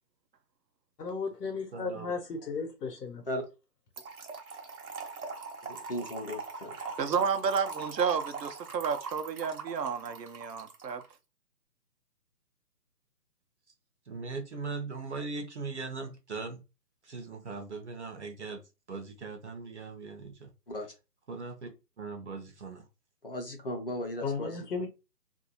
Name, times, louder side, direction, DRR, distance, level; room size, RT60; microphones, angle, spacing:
voice 1, 1.0-3.2 24.2-24.9, left 4 dB, 70° left, 0.9 m, -35 dB
voice 2, 1.7-2.1 14.1-16.6 17.0-18.6 18.9-20.5 21.3-22.8, right 4 dB, 45° right, 0.6 m, -39 dB
Trickle dribble / Fill (with liquid), 4.0-11.1, right 4 dB, 60° right, 0.9 m, -41 dB
voice 3, 5.6-6.7 20.7-20.9 23.2-24.5, left 1 dB, 35° left, 0.6 m, -36 dB
voice 4, 7.0-11.0, right 6 dB, 90° right, 0.7 m, -31 dB
2.9 x 2.6 x 2.8 m
hypercardioid pair, 155°, 48 cm